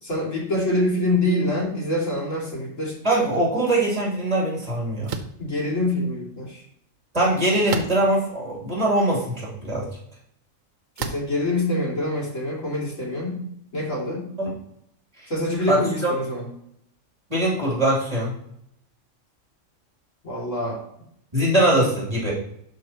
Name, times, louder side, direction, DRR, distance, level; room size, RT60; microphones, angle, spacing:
voice 1, 0.0-3.0 5.4-6.6 11.0-13.4 13.7-14.3 15.3-16.5 20.2-20.8 21.7-21.9, left 1 dB, 75° left, -4 dB, 2.9 m, -25 dB
voice 2, 3.0-5.1 7.1-9.9 14.4-14.5 15.7-16.1 17.3-18.3 21.3-22.3, right 1 dB, 30° right, -5 dB, 3.0 m, -22 dB
sound 1, 5.1-5.4 7.7-8.2 8.9-9.0 11.0-11.4, right 6 dB, 80° right, 1.2 m, -31 dB
11.5 x 4.7 x 3.0 m, 0.73 s
omnidirectional pair, 1.3 m